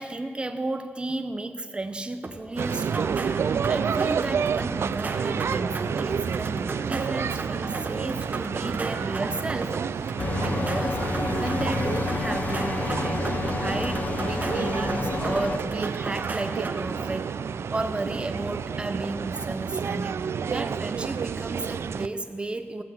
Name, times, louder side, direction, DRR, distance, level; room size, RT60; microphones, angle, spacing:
voice 1, 0.0-10.1 10.4-13.3 13.6-22.8, right 2 dB, 25° right, 9 dB, 0.7 m, -33 dB
sound 1, 2.2-17.1, right 3 dB, 40° right, 1.0 m, -37 dB
sound 2, 2.6-22.1, right 6 dB, 85° right, 0.3 m, -30 dB
sound 3, 10.2-15.6, left 3 dB, 40° left, 0.5 m, -29 dB
15.0 x 8.2 x 7.4 m, 2.2 s
wide cardioid pair, 135°, 4 cm